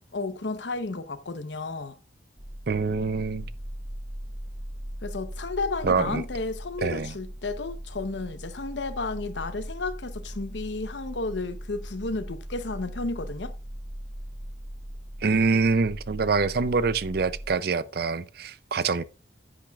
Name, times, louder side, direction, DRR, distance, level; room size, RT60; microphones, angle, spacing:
voice 1, 0.1-2.0 5.0-13.5, left 3 dB, 80° left, 0.9 m, -32 dB
sound 1, 2.4-17.5, equal, 40° right, 3.1 m, -39 dB
voice 2, 2.7-3.5 5.8-6.2 6.8-7.1 15.2-19.0, right 4 dB, 55° right, 0.5 m, -25 dB
10.0 x 8.9 x 2.4 m
head